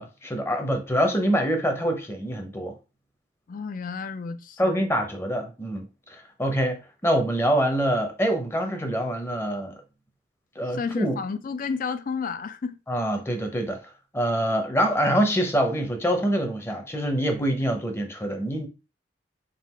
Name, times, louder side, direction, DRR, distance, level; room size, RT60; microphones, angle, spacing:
voice 1, 0.0-2.7 4.6-9.8 10.6-11.2 12.9-13.8 14.1-18.7, equal, 15° left, 0.7 m, -25 dB
voice 2, 3.5-4.9 10.7-12.8, left 5 dB, 50° left, 0.4 m, -31 dB
3.8 x 2.4 x 4.3 m
head